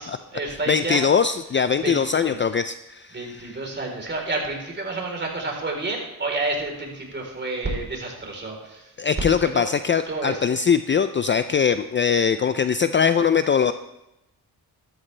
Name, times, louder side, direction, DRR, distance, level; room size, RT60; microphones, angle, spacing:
voice 1, 0.0-1.0 1.8-2.4 3.1-8.9 9.4-9.6 10.1-10.4, right 2 dB, 30° right, 0 dB, 3.9 m, -30 dB
voice 2, 0.7-3.6 9.0-13.7, left 6 dB, 30° left, 11 dB, 0.4 m, -21 dB
14.0 x 13.0 x 3.3 m, 0.91 s
cardioid pair, 95°, 38 cm